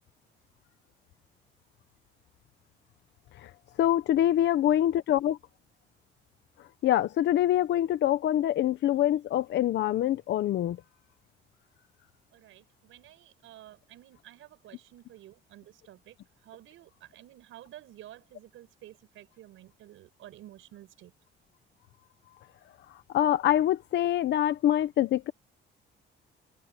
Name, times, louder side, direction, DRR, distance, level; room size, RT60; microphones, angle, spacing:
voice 1, 3.8-5.4 6.8-10.8 23.1-25.3, left 12 dB, 60° left, 0.8 m, -25 dB
voice 2, 12.3-16.2 16.4-21.1, right 13 dB, 85° right, 5.8 m, -51 dB
cardioid pair, 155°, 20 cm